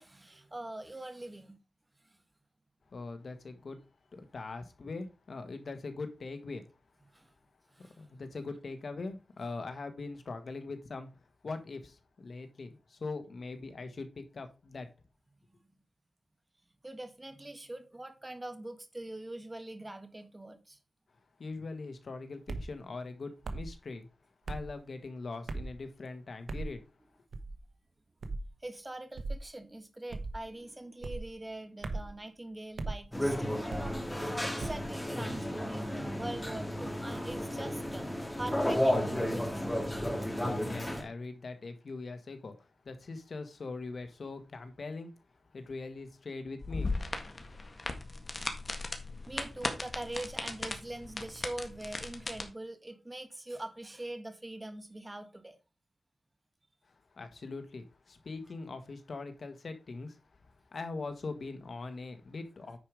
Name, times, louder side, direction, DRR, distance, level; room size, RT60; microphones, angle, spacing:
voice 1, 0.0-1.6 7.1-7.3 7.7-8.0 16.8-20.8 28.6-38.1 38.4-39.8 49.3-55.6, right 1 dB, 20° right, 1.6 m, -43 dB
voice 2, 2.9-3.8 4.1-6.6 8.0-11.1 11.4-14.9 21.4-24.1 24.5-26.8 40.4-42.5 42.8-45.1 45.5-47.0 57.1-60.2 60.7-62.8, left 3 dB, 65° left, 1.5 m, -41 dB
sound 1, 22.5-22.7 23.4-23.7 24.5-24.7 25.5-25.8 26.5-26.7 27.3-27.6 28.2-28.5 29.2-29.4 30.1-30.4 31.0-31.3 31.8-32.1 32.8-33.0 33.7-34.0 34.6-34.9, right 3 dB, 80° right, 1.2 m, -37 dB
sound 2, 33.1-41.0, equal, 10° left, 2.5 m, -33 dB
sound 3, 46.6-52.4, left 3 dB, 40° left, 1.7 m, -37 dB
9.8 x 4.9 x 5.0 m
wide cardioid pair, 80°, 0 cm